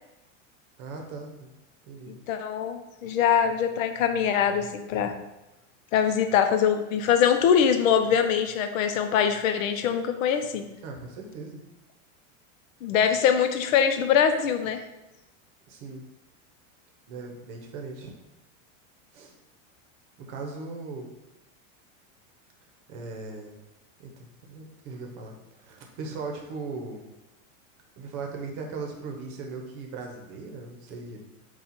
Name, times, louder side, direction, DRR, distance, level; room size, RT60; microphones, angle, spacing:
voice 1, 0.8-1.5 1.9-2.2 10.8-11.6 15.7-16.0 17.1-18.1 19.1-19.3 20.2-21.1 22.9-23.6 24.0-27.1 28.0-31.2, right 4 dB, 45° right, 2 dB, 0.8 m, -38 dB
voice 2, 2.1-5.1 5.9-10.7 12.8-14.8, left 8 dB, 85° left, 7 dB, 0.6 m, -23 dB
4.2 x 2.4 x 4.1 m, 0.98 s
supercardioid pair, 155°, 39 cm